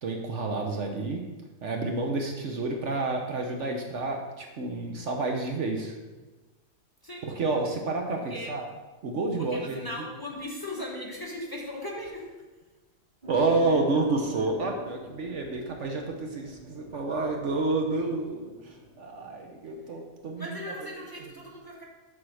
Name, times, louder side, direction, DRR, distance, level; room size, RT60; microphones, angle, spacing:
voice 1, 0.0-1.2 1.6-5.9 7.2-8.6 9.0-9.7 13.3-20.5, right 3 dB, 60° right, 2 dB, 1.1 m, -29 dB
voice 2, 8.2-8.5 9.4-12.4 20.4-21.8, left 1 dB, 15° left, -3 dB, 1.1 m, -38 dB
sound 1, 13.2-20.7, left 3 dB, 35° right, 1.8 m, -45 dB
7.2 x 4.3 x 6.2 m, 1.2 s
omnidirectional pair, 1.5 m